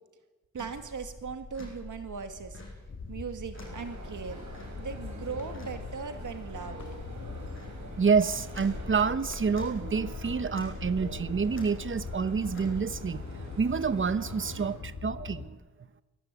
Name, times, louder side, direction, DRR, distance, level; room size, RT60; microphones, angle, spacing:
voice 1, 0.5-2.6 3.1-4.4 4.8-6.8, right 5 dB, 90° right, 7 dB, 2.3 m, -39 dB
sound 1, 0.6-12.8, left 2 dB, 40° left, 7.5 m, -46 dB
sound 2, 2.9-15.5, left 5 dB, 70° left, 2.2 m, -42 dB
sound 3, 3.5-14.7, right 2 dB, 65° right, 6.6 m, -47 dB
voice 2, 8.0-13.2 13.6-15.6, right 5 dB, 40° right, 13 dB, 1.0 m, -28 dB
24.0 x 18.5 x 8.5 m, 1.2 s
wide cardioid pair, 145°, 30 cm